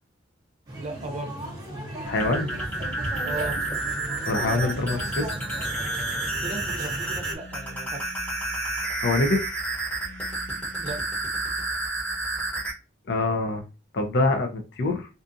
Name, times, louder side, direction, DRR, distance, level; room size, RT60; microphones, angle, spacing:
sound 1, 0.7-7.4, right 1 dB, 20° right, 1.0 m, -35 dB
voice 1, 0.8-1.3 3.2-3.6 6.4-8.0 10.8-11.0, right 2 dB, 35° right, 0.6 m, -36 dB
sound 2, 2.0-12.7, right 2 dB, 10° left, 1.0 m, -30 dB
voice 2, 2.1-2.5 4.3-5.2 9.0-9.6 13.1-13.6 13.9-14.5 14.8-15.1, left 2 dB, 60° left, 0.5 m, -24 dB
2.6 x 2.4 x 2.5 m
head